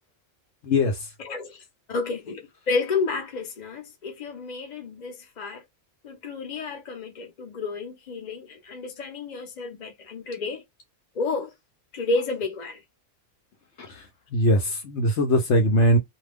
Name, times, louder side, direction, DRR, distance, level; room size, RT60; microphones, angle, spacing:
voice 1, 0.6-1.0 13.9-14.0 14.3-16.0, equal, 65° left, 1.0 m, -21 dB
voice 2, 1.2-1.6 1.9-5.6 6.0-10.6 11.1-11.5 11.9-12.8, left 3 dB, 40° left, 0.9 m, -31 dB
2.5 x 2.3 x 3.4 m
omnidirectional pair, 1.3 m